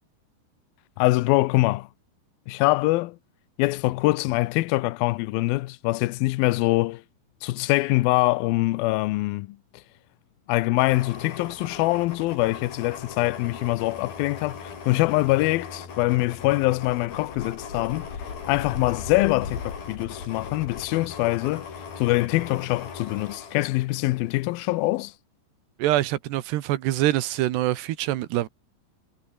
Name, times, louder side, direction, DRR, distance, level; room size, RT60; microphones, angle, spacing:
voice 1, 1.0-1.9 2.5-3.2 3.6-7.0 7.4-9.6 10.5-18.1 18.5-21.7 22.0-25.1, left 20 dB, 80° left, 2.2 m, -24 dB
sound 1, 10.8-24.5 24.9-25.0, left 6 dB, 60° left, 6.5 m, -38 dB
voice 2, 25.8-28.5, right 14 dB, 75° right, 3.3 m, -24 dB
omnidirectional pair, 4.9 m